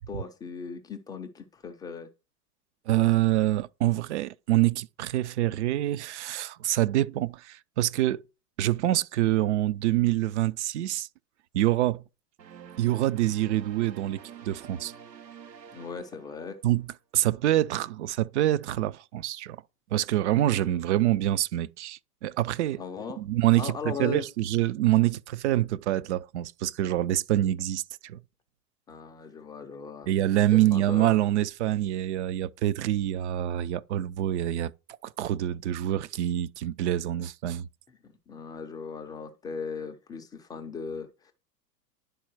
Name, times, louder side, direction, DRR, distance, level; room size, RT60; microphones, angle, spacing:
voice 1, 0.1-2.1 15.7-16.6 20.5-20.6 22.8-23.2 23.6-24.2 28.9-30.1 30.7-31.2 38.3-41.3, left 5 dB, 10° left, 0.4 m, -38 dB
voice 2, 2.9-8.2 8.6-11.1 11.5-12.0 12.8-14.9 16.6-16.9 17.1-19.6 19.9-22.8 23.2-28.2 30.1-34.7 35.0-37.7, right 14 dB, 45° right, 0.5 m, -26 dB
sound 1, 12.4-16.9, right 8 dB, 85° right, 0.8 m, -48 dB
10.5 x 4.3 x 4.6 m
figure-of-eight pair, 95°, 50 cm